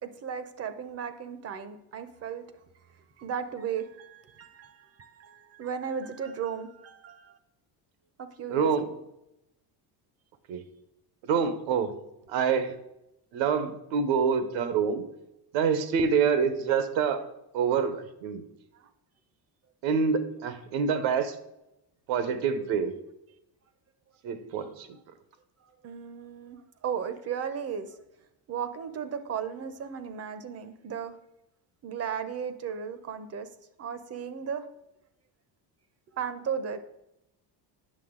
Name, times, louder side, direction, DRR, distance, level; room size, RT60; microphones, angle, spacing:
voice 1, 0.0-2.4 3.2-7.4 8.2-9.0 12.6-12.8 18.7-18.9 24.6-24.7 25.6-28.0 28.5-31.2 31.8-33.5 33.8-34.7 36.1-36.8, right 7 dB, 35° right, 11 dB, 0.6 m, -36 dB
voice 2, 8.5-8.8 10.5-10.6 11.2-12.0 12.3-12.7 13.3-15.0 15.5-17.2 17.5-18.4 19.8-21.3 22.1-22.9 24.2-24.9, right 6 dB, 85° right, 11 dB, 1.0 m, -26 dB
8.7 x 6.5 x 3.7 m, 0.88 s
cardioid pair, 150°, 45 cm